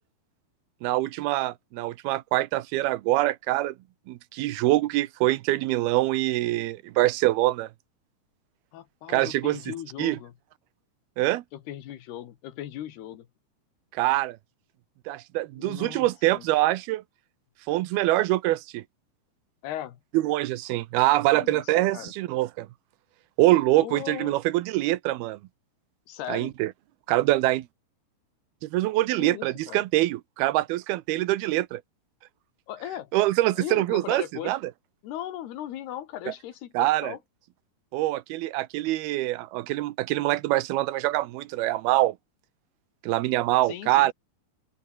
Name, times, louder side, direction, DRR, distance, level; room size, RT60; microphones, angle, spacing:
voice 1, 0.8-3.7 4.1-7.7 9.1-10.2 11.2-11.4 13.9-14.4 15.1-17.0 17.7-18.8 20.1-22.7 23.4-25.4 26.3-26.7 27.1-27.7 28.6-31.8 33.1-34.6 36.3-36.4 36.7-37.1 37.9-42.2 43.0-44.1, right 17 dB, 85° right, 2.8 m, -24 dB
voice 2, 8.7-10.3 11.5-13.3 15.6-16.5 19.6-20.0 21.3-22.1 23.8-24.4 26.1-26.5 29.2-29.8 32.7-33.1 33.5-34.6 35.0-37.2 43.6-44.1, left 12 dB, 85° left, 3.8 m, -38 dB
open air
omnidirectional pair, 4.5 m